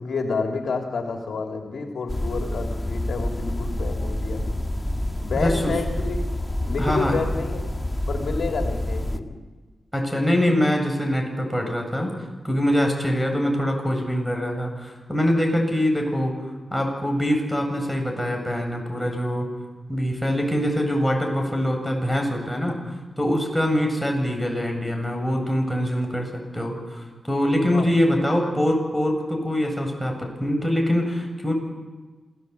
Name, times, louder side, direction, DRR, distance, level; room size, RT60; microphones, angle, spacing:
voice 1, 0.0-4.5 5.2-6.2 6.6-7.7 8.1-9.3 27.6-27.9, left 4 dB, 80° left, 3 dB, 3.2 m, -29 dB
sound 1, 2.1-9.2, left 1 dB, 20° left, 1.9 m, -28 dB
voice 2, 5.4-5.7 6.8-7.2 9.9-12.1 12.4-16.4 16.7-19.5 19.9-22.8 23.2-31.5, equal, 5° left, 2 dB, 7.8 m, -24 dB
27.5 x 17.5 x 8.6 m, 1.3 s
cardioid pair, 45°, 0 cm